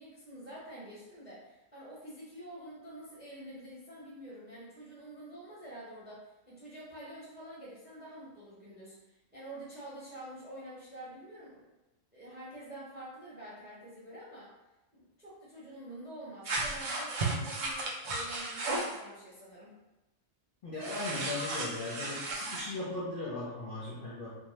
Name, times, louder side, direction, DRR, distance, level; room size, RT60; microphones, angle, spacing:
voice 1, 0.0-11.7 12.1-14.5 14.9-19.7, right 1 dB, 10° right, -7 dB, 0.6 m, -47 dB
sound 1, 16.4-19.0 20.8-22.6, right 2 dB, 80° right, 0.4 m, -34 dB
voice 2, 20.6-24.4, left 2 dB, 50° left, -8 dB, 0.7 m, -38 dB
2.7 x 2.1 x 3.1 m, 1.0 s
omnidirectional pair, 1.4 m